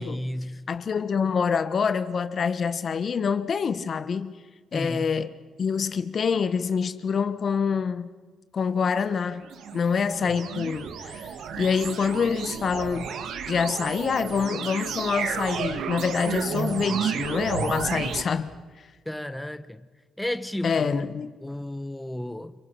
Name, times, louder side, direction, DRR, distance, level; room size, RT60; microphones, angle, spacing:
voice 1, 0.0-0.7 4.7-5.1 19.1-19.8 20.2-20.9 21.4-22.5, left 1 dB, 5° left, 1.1 m, -33 dB
voice 2, 0.7-4.4 4.7-5.3 5.6-8.1 8.5-9.5 9.7-11.3 11.6-13.1 13.5-18.5 20.6-21.3, left 6 dB, 50° left, 1.5 m, -26 dB
sound 1, 9.2-18.2, right 7 dB, 75° right, 2.4 m, -32 dB
28.5 x 25.5 x 5.9 m
cardioid pair, 90°, 0 cm